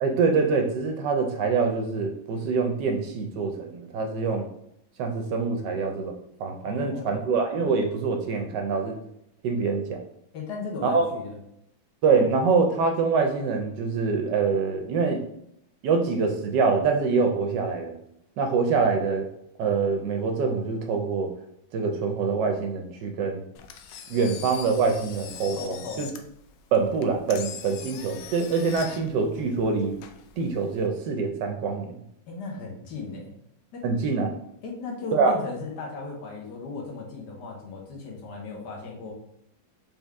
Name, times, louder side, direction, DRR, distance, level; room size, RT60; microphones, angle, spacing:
voice 1, 0.0-4.5 5.0-6.1 6.4-9.0 9.4-10.0 10.8-11.1 12.0-15.2 15.8-17.9 18.4-19.3 19.6-21.3 21.7-23.4 24.1-26.1 26.7-30.0 30.4-31.9 33.8-34.3 35.1-35.3, right 4 dB, 70° right, 4 dB, 1.1 m, -25 dB
voice 2, 6.6-7.2 10.3-11.4 25.6-26.1 32.3-33.3 33.7-33.9 34.6-39.1, left 3 dB, 60° left, -1 dB, 1.5 m, -36 dB
Engine, 23.5-30.9, left 8 dB, 90° left, 1.4 m, -42 dB
4.2 x 3.6 x 3.5 m, 0.75 s
omnidirectional pair, 2.2 m